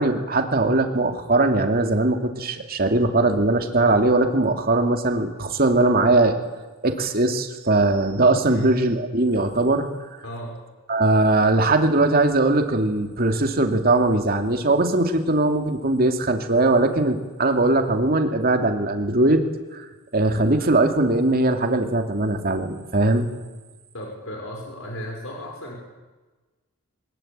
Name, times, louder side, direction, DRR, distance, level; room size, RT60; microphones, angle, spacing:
voice 1, 0.0-6.4 6.8-9.9 10.9-19.4 19.7-19.9 20.1-23.3, right 2 dB, 45° right, 5 dB, 2.6 m, -20 dB
voice 2, 10.2-10.6 23.9-25.8, equal, 60° left, 0 dB, 6.1 m, -34 dB
23.0 x 21.5 x 8.9 m, 1.2 s
head